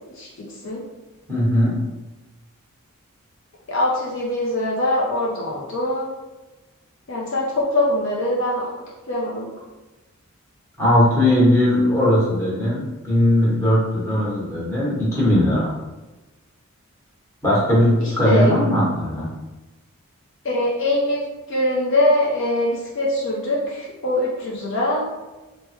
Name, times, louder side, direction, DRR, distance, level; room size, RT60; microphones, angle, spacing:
voice 1, 0.1-0.8 3.7-6.1 7.1-8.7 9.1-9.5 18.0-18.6 20.4-21.2 21.5-25.1, left 1 dB, 55° left, -4 dB, 0.5 m, -22 dB
voice 2, 1.3-1.8 10.8-15.7 17.4-19.3, left 1 dB, 15° left, -9 dB, 1.1 m, -18 dB
3.3 x 2.1 x 3.1 m, 1.1 s
head